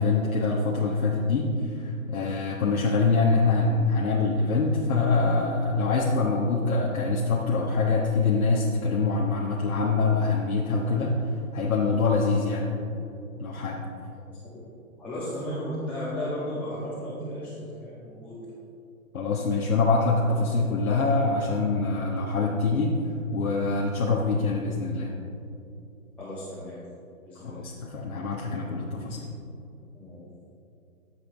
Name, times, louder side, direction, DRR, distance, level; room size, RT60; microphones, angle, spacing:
voice 1, 0.0-11.2 11.5-12.8 13.4-13.8 19.1-22.9 23.3-25.1 27.4-29.3, left 3 dB, 75° left, -3 dB, 1.4 m, -24 dB
voice 2, 15.0-18.4 26.2-26.8 27.3-27.7 29.9-30.2, equal, 5° left, -12 dB, 2.0 m, -34 dB
13.5 x 7.7 x 3.4 m, 2.7 s
hypercardioid pair, 145°, 42 cm